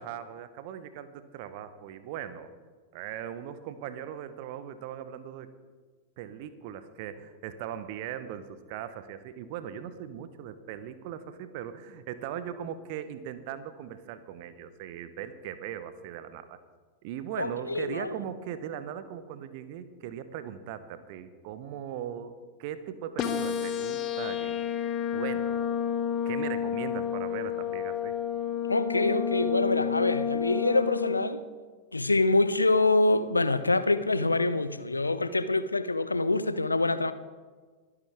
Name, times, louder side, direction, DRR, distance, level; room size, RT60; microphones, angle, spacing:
voice 1, 0.0-2.5 2.9-5.5 6.2-16.6 17.0-24.6 25.1-25.7 26.2-28.1, right 9 dB, 45° right, 1.0 m, -39 dB
voice 2, 17.4-18.2 28.7-31.4 31.9-37.1, left 2 dB, 80° left, 0.6 m, -25 dB
sound 1, 23.2-31.2, left 8 dB, 35° left, 1.2 m, -30 dB
22.5 x 9.8 x 3.6 m
figure-of-eight pair, 90°, 0 cm